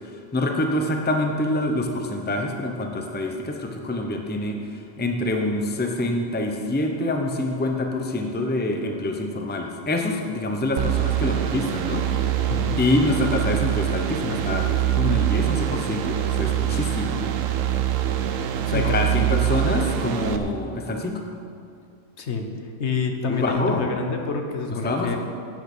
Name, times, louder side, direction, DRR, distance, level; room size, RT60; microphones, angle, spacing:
voice 1, 0.1-12.0 12.3-12.5 12.8-17.2 18.7-21.2 23.3-23.9 24.8-25.2, left 2 dB, 10° left, 3 dB, 0.7 m, -26 dB
sound 1, 10.8-20.4, right 11 dB, 85° right, 1.1 m, -24 dB
voice 2, 12.5-12.8 18.6-19.0 22.2-22.5 22.8-25.2, left 4 dB, 60° left, 4 dB, 1.2 m, -27 dB
10.5 x 9.1 x 6.2 m, 2.4 s
omnidirectional pair, 1.3 m